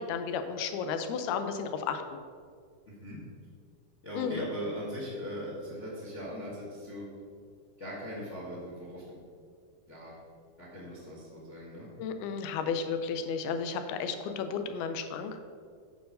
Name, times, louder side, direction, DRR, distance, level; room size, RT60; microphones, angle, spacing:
voice 1, 0.0-2.0 4.2-4.4 12.0-15.4, left 6 dB, 90° left, 8 dB, 2.6 m, -33 dB
voice 2, 2.9-3.2 4.0-7.1 7.8-9.2 9.9-10.2 10.6-11.9, equal, 55° left, -5 dB, 0.7 m, -40 dB
9.0 x 4.7 x 6.5 m, 2.1 s
omnidirectional pair, 4.3 m